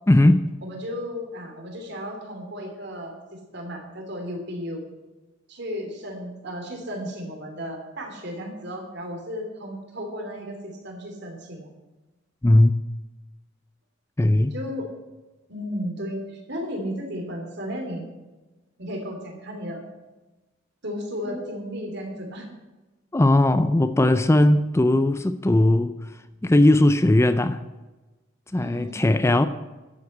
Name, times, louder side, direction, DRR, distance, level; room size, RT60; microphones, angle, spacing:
voice 1, 0.1-0.5 12.4-12.7 14.2-14.5 21.3-21.4 23.1-25.9 26.4-27.6 28.5-29.5, left 1 dB, 15° left, 0.4 m, -18 dB
voice 2, 0.6-3.2 3.5-4.8 5.5-11.7 14.5-14.9 15.5-18.1 18.8-19.8 20.8-22.5 28.5-29.2, equal, 60° right, 3.0 m, -34 dB
11.5 x 8.2 x 7.9 m
head